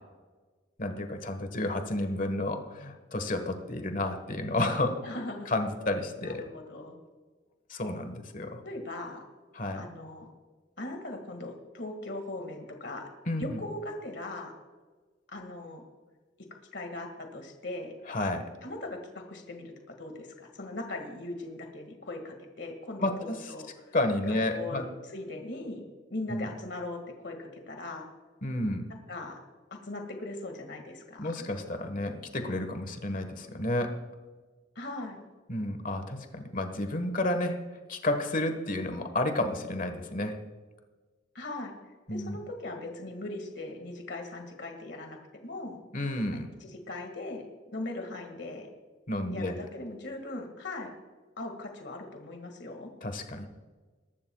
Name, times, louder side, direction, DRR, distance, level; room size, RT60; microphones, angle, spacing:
voice 1, 0.8-5.0 5.5-6.4 7.7-8.6 9.5-9.8 13.3-13.6 18.1-18.5 23.0-23.5 23.9-24.9 26.3-26.5 28.4-28.9 31.2-34.0 35.5-40.4 42.1-42.4 45.9-46.5 49.1-49.6 53.0-53.5, left 1 dB, 45° left, 7 dB, 1.5 m, -31 dB
voice 2, 5.0-5.6 6.2-7.0 8.6-9.2 9.7-10.3 10.8-13.1 13.4-14.5 15.3-15.8 16.7-17.9 18.6-24.0 24.3-25.8 26.1-28.1 29.1-29.4 29.8-31.5 34.8-35.2 41.3-41.7 42.1-45.8 46.6-47.5 47.7-48.7 49.3-50.9 51.4-52.9, left 2 dB, 65° left, 4 dB, 2.1 m, -39 dB
22.5 x 12.0 x 2.4 m, 1.3 s
head